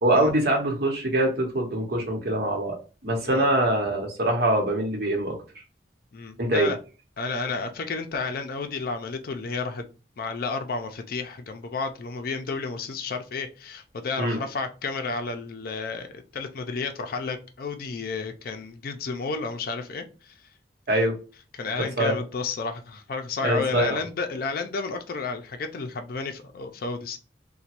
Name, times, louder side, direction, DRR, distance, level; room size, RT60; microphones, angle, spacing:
voice 1, 0.0-2.8 3.0-5.4 6.4-6.7 14.2-14.4 20.9-21.1 21.8-22.2 23.4-24.0, right 1 dB, 60° right, 0.9 m, -24 dB
voice 2, 6.1-6.8 7.2-9.9 10.2-16.1 16.3-20.3 21.5-27.2, left 4 dB, 55° left, 0.4 m, -31 dB
3.0 x 2.2 x 2.9 m
head